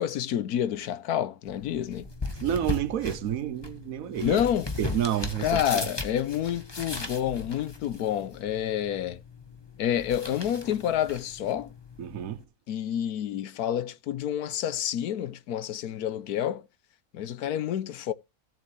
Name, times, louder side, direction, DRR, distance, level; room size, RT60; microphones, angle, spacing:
voice 1, 0.0-2.1 4.2-4.7 5.4-9.2 9.8-11.7 12.7-16.7 17.1-18.1, left 10 dB, 80° left, 1.3 m, -29 dB
sound 1, 1.4-12.4, left 3 dB, 20° left, 1.2 m, -38 dB
voice 2, 2.4-4.4 4.8-5.6 12.0-12.4, right 10 dB, 70° right, 1.1 m, -29 dB
16.0 x 7.5 x 3.2 m
omnidirectional pair, 1.6 m